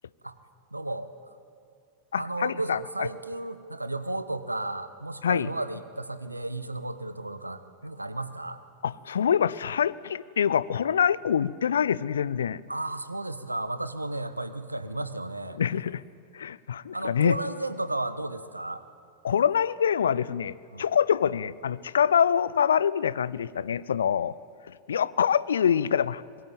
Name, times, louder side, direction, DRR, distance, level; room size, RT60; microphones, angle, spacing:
voice 1, 0.7-1.1 2.1-8.6 12.7-15.6 16.9-18.8 20.7-20.8, right 2 dB, 85° right, 13 dB, 1.2 m, -33 dB
voice 2, 2.1-3.1 5.2-5.5 8.8-12.6 15.6-16.0 16.3-17.4 19.2-24.3 24.9-26.2, left 8 dB, 65° left, 20 dB, 0.6 m, -25 dB
25.0 x 21.5 x 9.0 m, 2.4 s
figure-of-eight pair, 90°, 0 cm